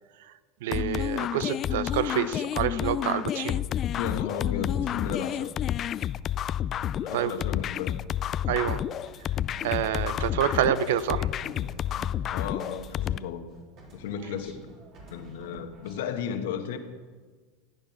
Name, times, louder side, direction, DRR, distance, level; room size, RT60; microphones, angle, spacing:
voice 1, 0.6-3.6 7.1-7.4 8.5-8.8 9.6-11.3, right 10 dB, 75° right, 15 dB, 0.6 m, -27 dB
sound 1, 0.7-13.2, left 11 dB, 40° left, 0.3 m, -30 dB
voice 2, 4.0-5.6 7.0-8.0 12.3-13.5 13.9-14.6 15.1-16.8, left 8 dB, 75° left, 7 dB, 1.3 m, -34 dB
sound 2, 9.1-13.5 13.8-16.1, right 2 dB, 50° right, 3.7 m, -48 dB
14.5 x 8.8 x 5.9 m, 1.4 s
hypercardioid pair, 100°, 0 cm